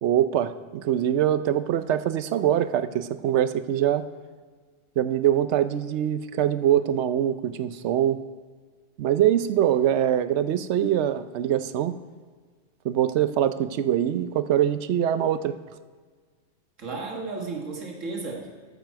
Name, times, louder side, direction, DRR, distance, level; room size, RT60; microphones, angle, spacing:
voice 1, 0.0-4.0 5.0-8.2 9.0-12.0 12.8-15.6, right 11 dB, 70° right, 13 dB, 0.9 m, -23 dB
voice 2, 16.8-18.5, right 3 dB, 90° right, 0 dB, 1.9 m, -33 dB
13.5 x 8.9 x 4.6 m, 1.5 s
omnidirectional pair, 1.3 m